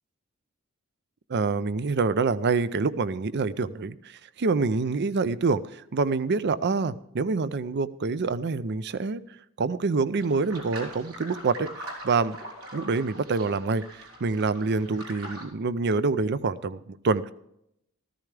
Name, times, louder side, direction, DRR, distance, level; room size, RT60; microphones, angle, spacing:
voice 1, 1.3-9.2 9.6-12.4 12.7-17.3, right 4 dB, 55° right, 16 dB, 0.5 m, -26 dB
sound 1, 10.2-15.4, right 1 dB, 85° right, 4.1 m, -42 dB
14.5 x 14.0 x 3.3 m, 0.77 s
head